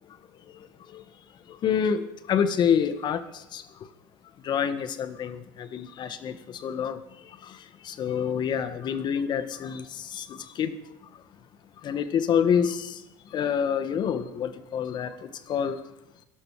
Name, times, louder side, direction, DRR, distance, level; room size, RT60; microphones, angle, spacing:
voice 1, 0.0-1.0 1.5-3.9 4.4-11.2 11.8-15.8, left 7 dB, 45° left, 1.6 m, -28 dB
17.5 x 12.0 x 5.0 m
supercardioid pair, 90°, 10 cm